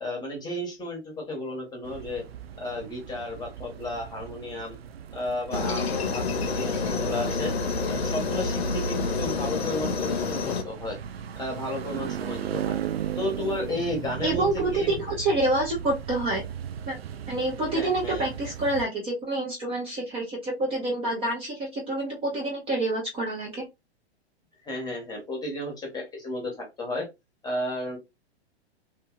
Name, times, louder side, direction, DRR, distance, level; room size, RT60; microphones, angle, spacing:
voice 1, 0.0-2.2 2.6-4.7 5.1-7.5 7.9-11.0 11.4-12.7 13.1-15.0 17.7-18.2 24.6-27.1 27.4-28.0, left 1 dB, 10° left, 1 dB, 1.1 m, -33 dB
sound 1, 1.8-18.8, right 9 dB, 65° right, 0.4 m, -37 dB
Aircraft, 5.5-10.6, left 4 dB, 70° left, 0.8 m, -28 dB
voice 2, 14.2-16.4 16.9-17.0 17.3-23.6, right 2 dB, 15° right, -2 dB, 0.7 m, -27 dB
2.8 x 2.6 x 2.4 m, 0.22 s
figure-of-eight pair, 110°, 33 cm